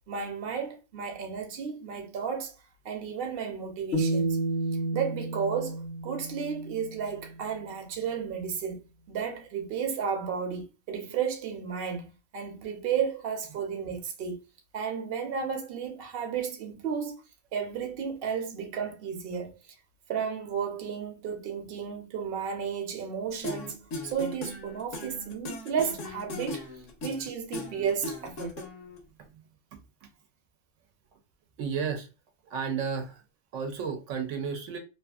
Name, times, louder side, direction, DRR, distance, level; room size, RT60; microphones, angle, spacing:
voice 1, 0.1-2.5 2.8-4.4 4.9-14.4 14.7-17.2 17.5-19.7 20.1-26.7 27.0-28.6, right 7 dB, 55° right, 0.8 m, -33 dB
sound 1, 3.9-7.1, right 2 dB, 65° left, 0.7 m, -30 dB
sound 2, 23.4-29.0, left 2 dB, 80° left, 1.1 m, -38 dB
voice 2, 29.7-30.1 31.6-32.1 32.5-33.2 33.5-34.8, right 6 dB, 80° right, 0.9 m, -33 dB
2.9 x 2.5 x 2.3 m
omnidirectional pair, 1.3 m